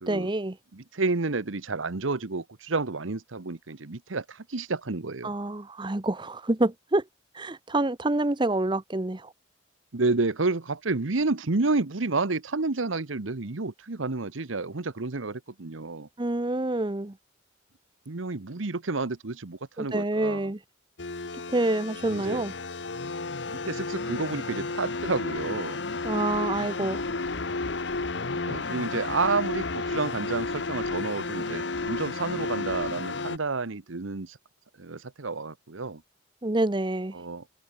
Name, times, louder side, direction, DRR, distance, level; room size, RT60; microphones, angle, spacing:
voice 1, 0.1-0.6 5.2-7.0 7.3-9.3 16.2-17.2 19.8-20.6 21.5-22.5 26.0-27.0 36.4-37.2, right 2 dB, 25° right, 0.8 m, -27 dB
voice 2, 0.7-5.3 9.9-16.1 18.1-20.5 22.0-22.4 23.5-25.8 28.3-34.4 34.8-36.0 37.1-37.4, right 3 dB, 85° right, 1.1 m, -30 dB
sound 1, 21.0-33.4, left 3 dB, 65° left, 1.2 m, -32 dB
head